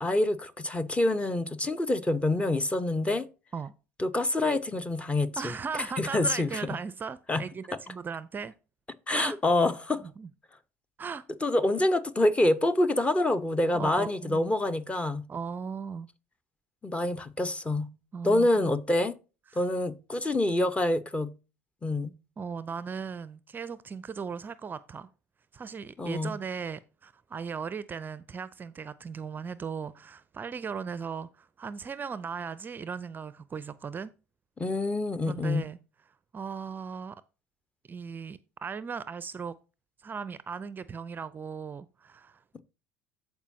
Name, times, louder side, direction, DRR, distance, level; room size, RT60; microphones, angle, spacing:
voice 1, 0.0-3.3 4.0-5.5 6.0-6.6 7.3-7.4 9.1-10.0 11.4-15.2 16.8-17.9 18.2-19.2 19.6-21.3 21.8-22.1 26.0-26.3 34.6-35.7 42.5-42.6, left 1 dB, 15° left, 0.9 m, -26 dB
voice 2, 5.4-8.5 9.1-9.4 10.0-10.3 11.0-11.2 13.7-14.5 15.3-16.1 18.1-18.7 19.5-19.6 22.4-25.1 25.5-34.1 35.3-35.8 36.3-37.2 37.9-39.5 40.0-42.4, right 6 dB, 25° right, 0.5 m, -37 dB
14.0 x 4.7 x 2.7 m
hypercardioid pair, 70°, 7 cm